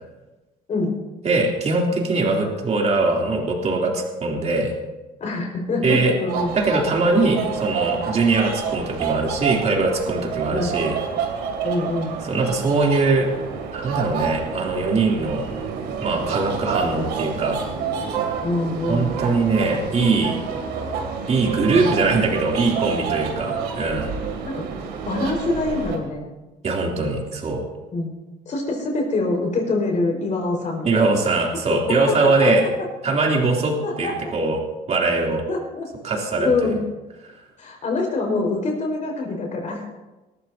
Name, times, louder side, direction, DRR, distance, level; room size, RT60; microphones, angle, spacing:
voice 1, 1.2-4.7 5.8-6.1 6.6-11.0 12.2-13.3 13.7-15.5 16.0-17.6 18.9-20.4 21.3-24.1 26.6-27.6 30.8-32.7 33.0-34.6 34.9-35.5 36.0-36.7 37.2-37.4, right 3 dB, 40° right, -1 dB, 3.1 m, -21 dB
voice 2, 5.2-6.6 10.5-10.7 11.6-12.1 18.4-19.1 24.4-24.6 25.0-26.3 27.9-28.1 28.4-31.0 32.2-32.5 33.8-34.1 35.5-35.9 36.4-36.8 37.6-39.8, left 2 dB, 45° left, 1 dB, 4.9 m, -25 dB
sound 1, 6.3-26.0, right 6 dB, 85° right, 2.6 m, -29 dB
20.0 x 14.0 x 2.8 m, 1.1 s
cardioid pair, 110°, 17 cm